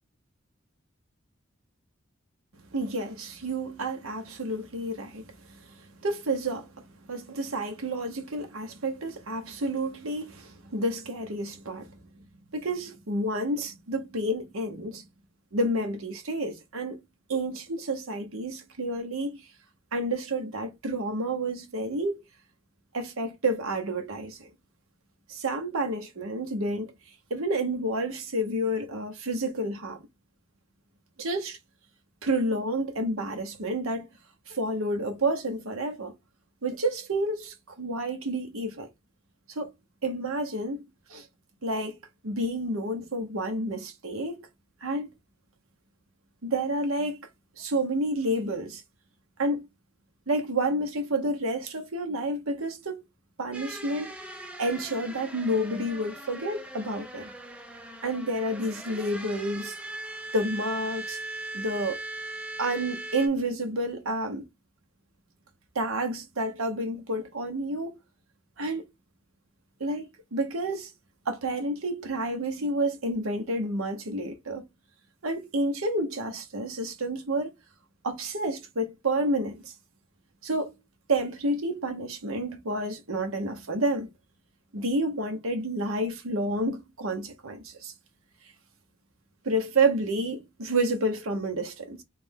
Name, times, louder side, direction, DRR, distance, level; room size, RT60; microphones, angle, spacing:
voice 1, 2.7-5.3 6.0-6.7 7.1-12.0 12.5-15.0 15.5-17.0 17.3-19.4 19.9-22.2 22.9-24.5 25.3-26.9 27.3-30.0 31.2-31.6 32.2-34.0 34.5-36.1 36.6-38.9 39.5-39.7 40.0-40.8 41.1-41.3 41.6-42.0 42.2-44.5 44.8-45.1 46.4-47.2 47.6-48.8 49.4-49.6 50.3-53.0 53.4-54.1 54.6-57.3 58.0-59.8 60.3-61.2 61.5-62.0 62.6-64.4 65.7-67.9 68.6-68.8 69.8-70.9 71.3-74.6 75.2-77.5 78.0-79.7 80.4-80.7 81.1-84.1 84.7-87.9 89.4-92.0, right 1 dB, 90° right, 1.0 m, -29 dB
sound 1, 53.5-63.3, right 1 dB, 5° right, 0.5 m, -40 dB
3.5 x 3.2 x 3.6 m
head